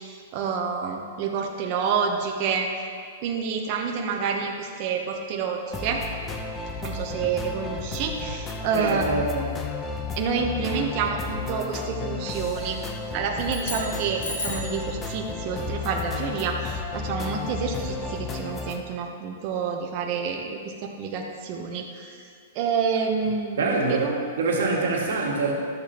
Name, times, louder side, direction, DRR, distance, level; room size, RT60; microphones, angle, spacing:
voice 1, 0.3-2.7 3.2-6.0 6.8-9.1 10.2-12.8 13.1-22.1 22.5-24.3, right 6 dB, 45° right, 1 dB, 0.9 m, -28 dB
sound 1, 5.7-18.8, left 4 dB, 20° left, 0.7 m, -33 dB
voice 2, 8.7-9.5 23.6-24.1 24.4-25.5, right 3 dB, 80° right, -2 dB, 1.8 m, -25 dB
sound 2, 13.4-14.8, left 2 dB, 90° left, 1.9 m, -34 dB
12.0 x 7.0 x 2.9 m, 2.1 s
hypercardioid pair, 135°, 0 cm